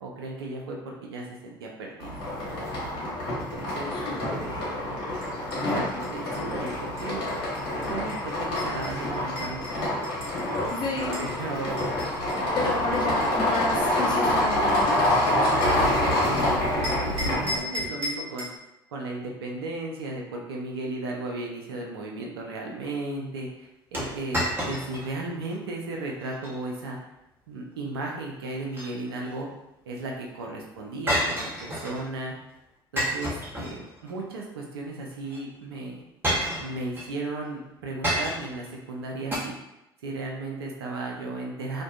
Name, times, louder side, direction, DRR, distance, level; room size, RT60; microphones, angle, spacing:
voice 1, 0.0-2.1 2.5-2.6 3.3-4.8 5.6-7.4 7.9-10.1 11.2-12.0 12.6-12.7 15.3-18.5 18.9-27.0 27.5-29.5 29.9-32.4 32.9-36.0 36.6-39.6 40.0-41.8, right 2 dB, 80° right, -1 dB, 0.5 m, -35 dB
sound 1, 2.0-17.6, left 1 dB, 75° left, 1.0 m, -27 dB
sound 2, 5.2-11.3 11.8-16.4 16.8-18.6, left 1 dB, 50° right, 1.2 m, -38 dB
voice 2, 10.7-11.3 12.5-15.0, left 3 dB, 40° left, -3 dB, 0.8 m, -31 dB
sound 3, 23.9-25.1 25.5-25.6 26.2-26.6 28.5-29.3 31.1-32.1 33.0-34.1 35.3-35.4 36.2-37.1 38.0-38.6 39.3-39.4, equal, 15° right, 0.8 m, -29 dB
2.6 x 2.2 x 2.3 m, 0.89 s
hypercardioid pair, 65°, 12 cm